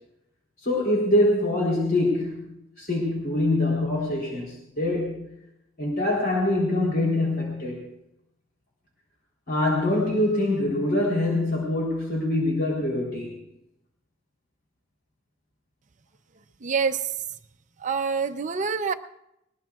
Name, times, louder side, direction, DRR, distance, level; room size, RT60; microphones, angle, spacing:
voice 1, 0.6-5.3 5.8-7.9 9.5-13.3, left 1 dB, 45° left, -3 dB, 3.5 m, -24 dB
voice 2, 16.6-17.0 17.8-18.9, right 5 dB, 35° right, 8 dB, 0.5 m, -26 dB
21.5 x 19.5 x 2.4 m, 0.83 s
head